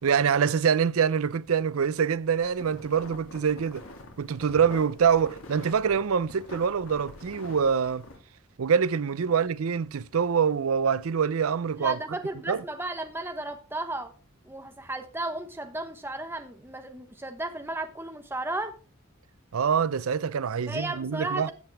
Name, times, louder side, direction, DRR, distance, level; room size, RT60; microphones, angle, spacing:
voice 1, 0.0-3.8 4.2-8.0 8.6-12.0 12.5-12.6 19.5-21.5, right 6 dB, 80° right, 0.5 m, -25 dB
sound 1, 2.4-8.2, left 2 dB, 75° left, 2.5 m, -45 dB
voice 2, 11.8-14.1 14.4-18.7 20.7-21.5, right 2 dB, 10° right, 1.0 m, -34 dB
14.5 x 7.7 x 3.4 m
head